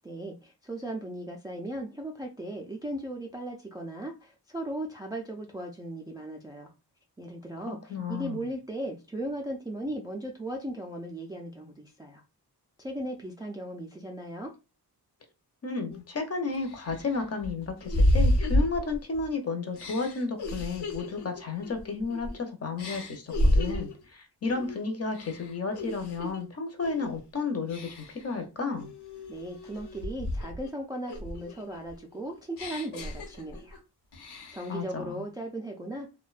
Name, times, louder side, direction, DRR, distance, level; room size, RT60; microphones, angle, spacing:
voice 1, 0.0-6.7 7.2-12.2 12.8-14.5 29.3-33.8 34.5-36.1, right 1 dB, 10° right, 0.3 m, -37 dB
voice 2, 7.7-8.4 15.6-28.9 34.7-35.2, left 4 dB, 40° left, 0.6 m, -32 dB
sound 1, 15.9-16.0 16.5-19.3 19.7-22.4 22.8-24.0 24.5-24.8 25.1-26.4 26.8-27.2 27.7-28.3 28.8-30.7 31.1-33.8 34.1-34.8, left 1 dB, 80° left, 0.9 m, -30 dB
2.5 x 2.1 x 2.3 m
wide cardioid pair, 100°, 39 cm